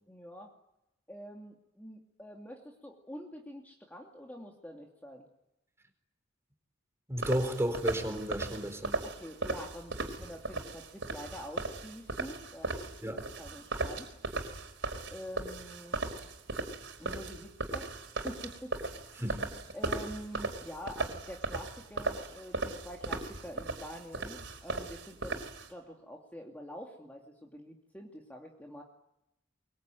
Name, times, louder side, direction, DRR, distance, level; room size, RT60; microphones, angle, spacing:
voice 1, 0.1-0.5 1.1-5.3 9.0-14.1 15.1-16.0 17.0-17.9 18.2-19.4 19.7-25.4 25.7-28.8, equal, 10° left, 0 dB, 2.7 m, -46 dB
voice 2, 7.1-9.0 13.0-13.2 19.2-19.5, equal, 15° right, 6 dB, 4.2 m, -32 dB
sound 1, 7.2-25.7, right 3 dB, 70° right, 4.9 m, -37 dB
23.5 x 23.0 x 9.3 m, 0.84 s
head